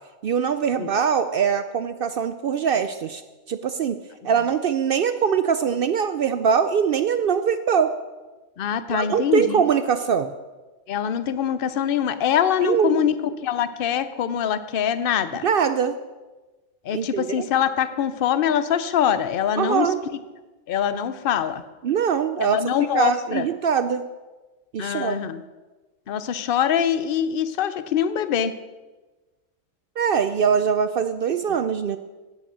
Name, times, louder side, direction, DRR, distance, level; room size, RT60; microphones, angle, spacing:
voice 1, 0.2-3.2 3.5-4.0 4.2-7.9 8.9-10.3 12.6-13.1 15.4-16.0 16.9-17.5 19.6-20.0 21.8-24.1 24.7-25.2 30.0-32.0, right 7 dB, 65° right, 10 dB, 0.6 m, -22 dB
voice 2, 8.6-9.6 10.9-13.2 13.4-15.5 16.9-19.9 20.7-21.6 22.4-23.4 24.8-25.4 26.1-28.5, left 9 dB, 55° left, 13 dB, 0.8 m, -23 dB
10.5 x 8.7 x 6.3 m, 1.2 s
omnidirectional pair, 1.3 m